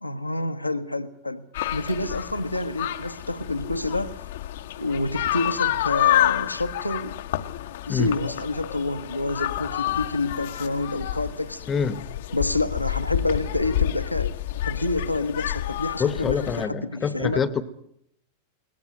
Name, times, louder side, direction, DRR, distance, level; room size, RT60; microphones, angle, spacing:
voice 1, 0.0-4.2 4.8-7.2 7.9-11.6 12.3-14.3 14.6-17.4, left 2 dB, 85° left, 9 dB, 1.0 m, -28 dB
sound 1, 1.5-16.6, left 13 dB, 55° left, 0.8 m, -29 dB
voice 2, 11.7-12.0 16.0-17.6, left 6 dB, 20° left, 15 dB, 1.0 m, -26 dB
22.0 x 19.0 x 9.2 m, 0.72 s
figure-of-eight pair, 90°, 0 cm